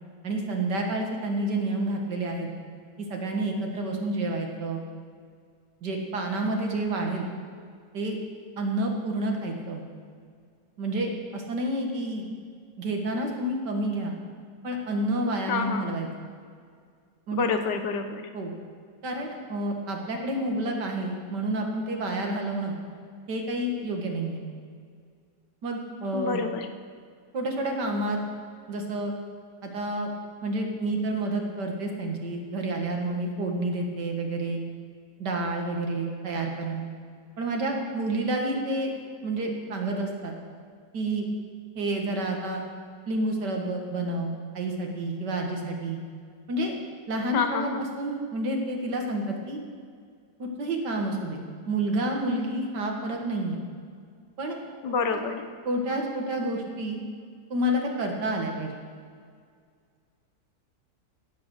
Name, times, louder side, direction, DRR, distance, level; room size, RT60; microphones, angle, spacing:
voice 1, 0.2-2.5 3.1-4.8 5.8-7.3 7.9-8.2 8.6-9.8 10.8-12.3 12.8-14.1 14.6-16.1 17.3-17.5 18.3-18.5 19.0-22.7 23.3-24.4 25.6-26.4 27.3-28.2 28.7-29.1 29.6-30.1 30.4-34.6 35.2-36.9 37.4-38.9 39.2-40.3 40.9-41.3 41.8-42.6 43.1-46.0 46.5-46.7 47.1-49.6 50.4-51.4 51.7-53.6 54.4-54.6 55.1-55.2 55.7-57.0 57.5-58.7, right 1 dB, 80° right, 1 dB, 2.3 m, -29 dB
voice 2, 15.5-15.9 17.3-18.2 26.1-26.7 47.3-47.8 54.8-55.5, left 5 dB, 85° left, 7 dB, 1.6 m, -28 dB
16.0 x 7.8 x 6.5 m, 2.1 s
omnidirectional pair, 1.8 m